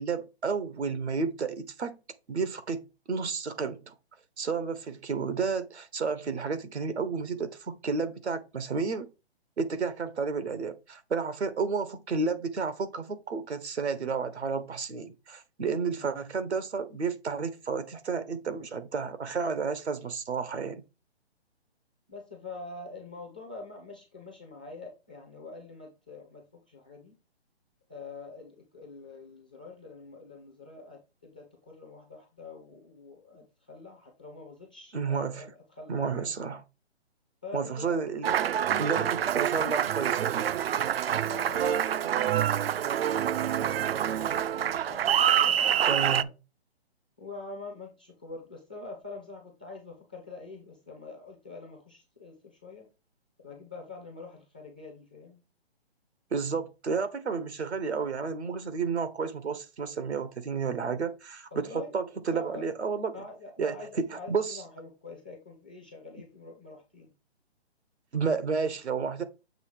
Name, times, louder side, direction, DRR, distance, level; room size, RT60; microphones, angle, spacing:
voice 1, 0.0-2.0 2.3-3.9 4.4-9.1 9.6-20.8 34.9-35.5 35.9-36.6 37.5-38.3 38.8-40.5 45.8-46.3 56.3-63.1 63.6-64.6 68.1-69.2, right 5 dB, 85° right, 1.3 m, -31 dB
voice 2, 15.6-16.1 22.1-27.2 27.9-35.5 35.8-36.3 37.4-37.9 38.6-39.4 41.1-46.3 47.2-52.9 53.4-55.4 61.5-61.9 62.3-62.7 63.1-67.1, left 3 dB, 10° left, 0.4 m, -45 dB
Applause, 38.2-46.2, right 10 dB, 65° right, 0.5 m, -26 dB
6.8 x 3.1 x 4.9 m
hypercardioid pair, 150°, 32 cm